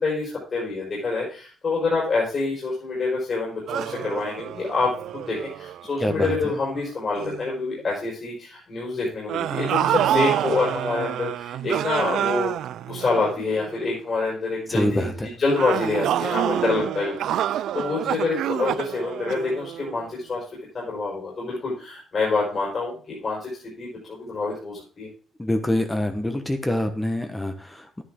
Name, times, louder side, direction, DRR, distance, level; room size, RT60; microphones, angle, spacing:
voice 1, 0.0-12.5 12.9-20.4 20.7-25.1, left 3 dB, 45° left, -4 dB, 4.6 m, -27 dB
sound 1, 3.7-6.8 7.2-7.5 9.3-13.9 15.5-20.1, right 11 dB, 80° right, 0.4 m, -28 dB
voice 2, 6.0-6.5 14.7-15.3 25.4-28.0, left 1 dB, 10° left, 6 dB, 1.3 m, -25 dB
10.5 x 10.0 x 3.7 m, 0.40 s
cardioid pair, 90°, 0 cm